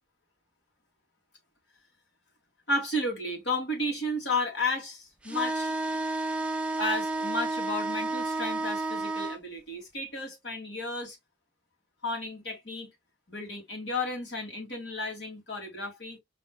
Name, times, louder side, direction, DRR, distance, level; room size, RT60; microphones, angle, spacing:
voice 1, 2.7-5.7 6.8-11.2 12.0-12.9 13.3-16.2, left 2 dB, 85° left, 2.7 m, -33 dB
sound 1, 5.2-9.4, right 2 dB, 5° right, 0.5 m, -31 dB
5.2 x 3.5 x 2.3 m
head